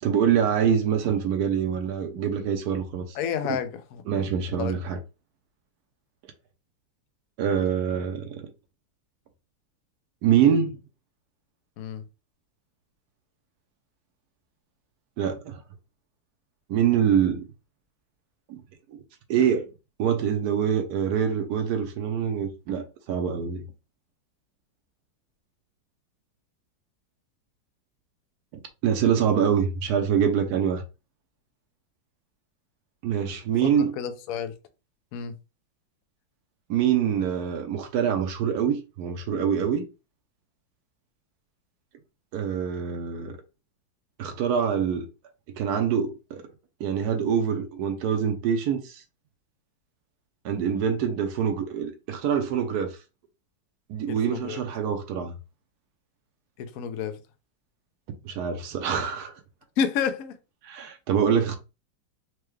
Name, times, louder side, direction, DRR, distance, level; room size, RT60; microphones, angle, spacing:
voice 1, 0.0-3.2 3.5-3.6 4.1-5.0 7.4-8.5 10.2-10.8 15.2-15.6 16.7-17.5 18.5-18.6 18.9-19.0 19.3-19.7 20.0-23.6 28.8-30.8 33.0-33.9 36.7-39.9 42.3-43.4 44.2-45.1 45.6-46.5 46.8-49.0 50.4-53.0 53.9-55.3 58.2-59.4 60.6-61.6, right 8 dB, 70° right, 0.9 m, -25 dB
voice 2, 3.1-4.0 4.6-4.8 11.8-12.0 33.6-34.5 35.1-35.3 54.1-54.6 56.6-57.2 59.8-60.3, left 7 dB, 85° left, 0.7 m, -30 dB
4.6 x 2.2 x 3.1 m
omnidirectional pair, 2.2 m